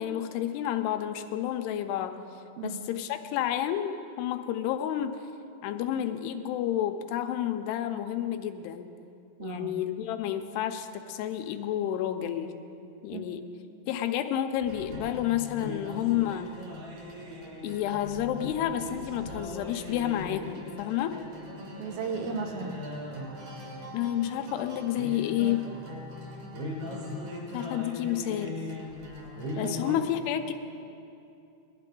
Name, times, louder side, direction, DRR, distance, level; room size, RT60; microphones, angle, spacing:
voice 1, 0.0-2.2 2.6-5.2 5.6-8.9 9.4-12.5 13.0-13.5 13.9-16.5 17.6-21.2 23.9-25.7 27.5-28.6 29.6-30.5, left 11 dB, 85° left, 7 dB, 2.7 m, -30 dB
voice 2, 9.4-9.7 13.1-13.2 21.5-22.8 29.6-29.7, right 5 dB, 75° right, 3 dB, 2.7 m, -35 dB
sound 1, 14.6-30.0, left 1 dB, 50° right, 3.2 m, -40 dB
20.0 x 12.0 x 3.8 m, 2.6 s
omnidirectional pair, 4.7 m